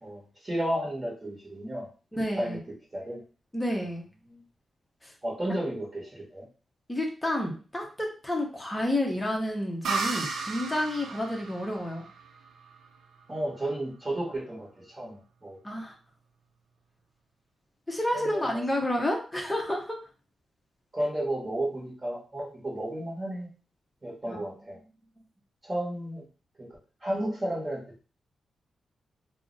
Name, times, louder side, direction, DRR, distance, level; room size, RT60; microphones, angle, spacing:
voice 1, 0.0-1.9 2.4-2.6 2.9-3.2 4.3-4.4 5.2-6.5 13.3-15.6 18.1-18.7 20.9-23.5 24.0-24.8 25.6-26.2 26.6-28.0, right 1 dB, 25° right, -5 dB, 1.0 m, -33 dB
voice 2, 2.1-2.6 3.5-4.1 5.0-5.1 6.9-12.1 15.6-15.9 17.9-20.0 24.3-24.5, left 1 dB, 10° left, 0 dB, 0.7 m, -30 dB
sound 1, 9.8-13.4, right 4 dB, 85° right, 0.4 m, -34 dB
2.4 x 2.0 x 3.8 m, 0.36 s
wide cardioid pair, 155°, 0 cm